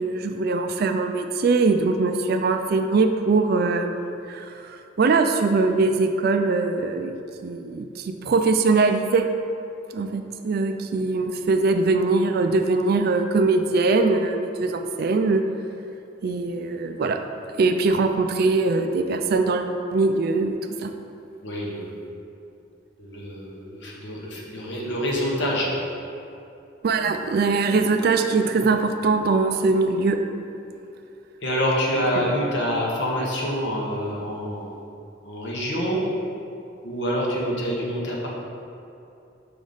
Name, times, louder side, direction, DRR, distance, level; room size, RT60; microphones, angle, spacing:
voice 1, 0.0-7.1 7.4-9.2 9.9-15.4 16.2-17.2 17.6-20.6 20.8-20.9 26.8-30.2 32.2-32.3, right 3 dB, 55° right, 6 dB, 0.3 m, -22 dB
voice 2, 21.4-22.0 23.0-25.7 31.4-34.7 35.2-36.0 36.8-38.3, equal, 65° left, -3 dB, 1.1 m, -26 dB
5.0 x 4.9 x 4.0 m, 2.7 s
head